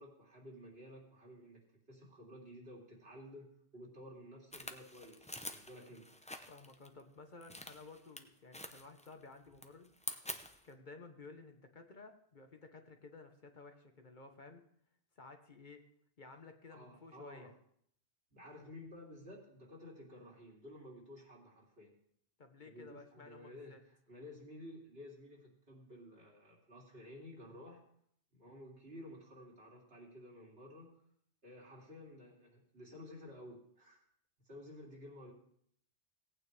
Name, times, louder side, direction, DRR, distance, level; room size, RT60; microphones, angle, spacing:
voice 1, 0.0-6.0 16.7-17.5 18.3-21.9 22.6-27.8 28.3-30.9 31.4-34.0 34.4-35.3, left 1 dB, 65° right, -3 dB, 3.2 m, -53 dB
sound 1, 4.5-6.9 7.4-8.2 8.5-9.2 9.5-10.7, left 1 dB, 10° left, 0.6 m, -47 dB
voice 2, 6.5-9.9 10.6-14.7 15.2-15.8 16.2-17.5 22.4-23.8, left 3 dB, 45° left, 5 dB, 1.1 m, -55 dB
17.5 x 9.0 x 3.3 m, 0.66 s
omnidirectional pair, 1.1 m